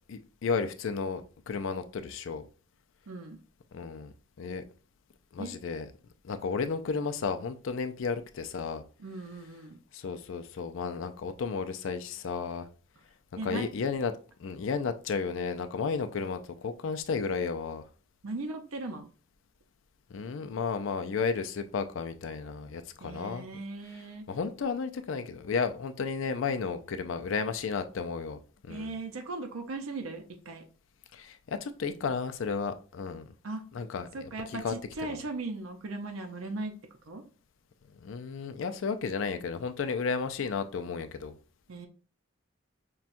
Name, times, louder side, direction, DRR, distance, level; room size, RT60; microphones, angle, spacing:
voice 1, 0.1-2.4 3.7-4.6 5.3-5.9 6.2-8.8 9.9-12.7 13.4-14.1 14.4-17.8 20.1-23.5 24.3-28.9 31.1-33.3 33.7-34.3 34.6-34.7 35.1-35.2 38.0-41.4, left 5 dB, 70° left, 0.4 m, -33 dB
voice 2, 3.1-3.4 5.4-5.6 9.0-9.8 13.4-13.7 18.2-19.1 23.0-24.2 28.7-30.6 33.4-33.6 34.1-36.7 37.1-37.2 41.7-41.9, right 2 dB, 80° right, 0.6 m, -38 dB
5.6 x 2.3 x 2.5 m
head